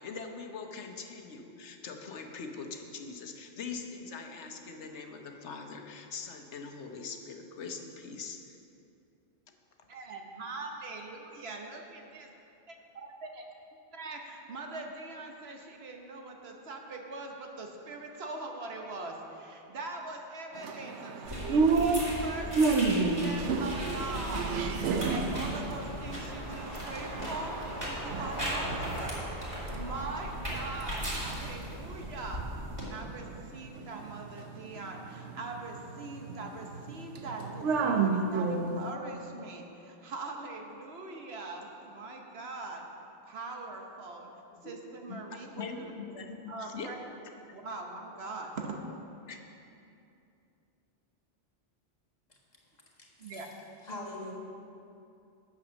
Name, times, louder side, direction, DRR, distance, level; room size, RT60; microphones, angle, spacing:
voice 1, 0.0-8.6 44.5-44.7 45.1-46.9 49.3-49.4, left 5 dB, 80° left, 4 dB, 1.1 m, -42 dB
voice 2, 9.9-12.3 13.3-13.4 13.9-27.6 27.9-29.2 29.7-32.4 32.8-42.9 43.2-44.3 44.6-45.9 46.2-47.0 47.5-48.8 53.2-53.5, right 3 dB, 65° right, 2 dB, 1.2 m, -42 dB
sound 1, 20.5-27.7 28.1-29.1 29.3-38.9, right 4 dB, 85° right, 1.0 m, -32 dB
sound 2, 21.2-32.8, equal, 20° right, 2.4 m, -38 dB
sound 3, 24.4-32.7 33.1-33.2, right 1 dB, 50° right, 1.4 m, -43 dB
voice 3, 53.0-53.4 53.8-54.3, left 2 dB, 40° left, -3 dB, 1.5 m, -42 dB
8.7 x 7.3 x 6.2 m, 2.7 s
omnidirectional pair, 1.2 m